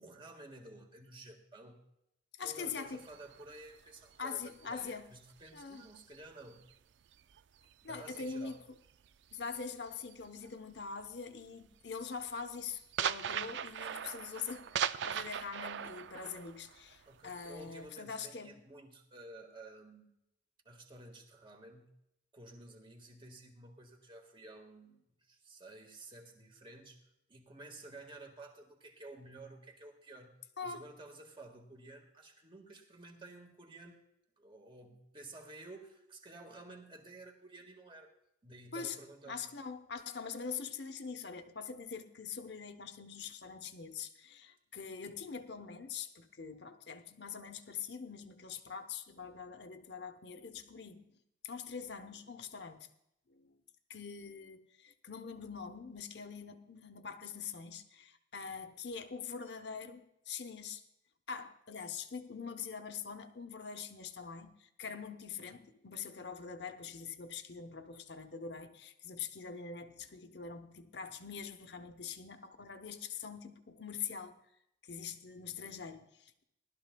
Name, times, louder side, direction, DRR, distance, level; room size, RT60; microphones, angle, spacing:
voice 1, 0.0-1.8 2.4-6.7 7.8-8.6 17.1-20.2 20.6-21.9 22.3-34.0 34.4-38.1 38.4-39.4, right 2 dB, 25° right, 1.6 m, -53 dB
voice 2, 2.4-3.1 4.2-5.1 5.5-5.8 7.8-8.6 9.3-18.5 30.6-30.8 38.7-39.0 39.3-51.2 51.4-52.9 53.3-53.5 53.9-60.8 61.3-74.4 74.8-76.4, left 6 dB, 60° left, 0.9 m, -44 dB
sound 1, 2.9-6.7 7.1-10.5 10.8-11.1 11.5-17.9, right 8 dB, 70° right, 0.4 m, -40 dB
19.5 x 12.5 x 2.2 m
head